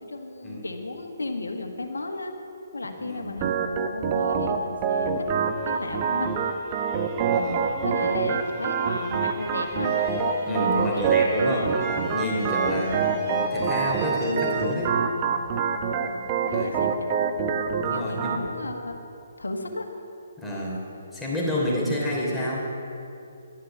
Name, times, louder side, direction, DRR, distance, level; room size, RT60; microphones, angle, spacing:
voice 1, 0.0-2.3 2.7-6.4 7.8-10.0 10.7-11.3 12.6-13.0 16.0-17.4 17.9-19.0 19.4-19.9, left 2 dB, 85° left, 4 dB, 1.6 m, -34 dB
voice 2, 3.0-3.3 7.3-7.7 8.0-8.3 10.4-11.7 12.1-12.9 13.3-14.9 16.5-16.7 17.8-18.4 20.4-20.8 21.1-22.6, left 1 dB, 5° left, -6 dB, 3.2 m, -29 dB
Organ, 3.4-18.4, right 6 dB, 30° right, 0.9 m, -26 dB
sound 1, 4.9-15.9, right 1 dB, 15° right, 2.6 m, -39 dB
Wind instrument woodwind instrument, 12.8-18.2, left 2 dB, 35° left, 2.2 m, -45 dB
12.0 x 11.5 x 7.3 m, 2.7 s
figure-of-eight pair, 140°, 0 cm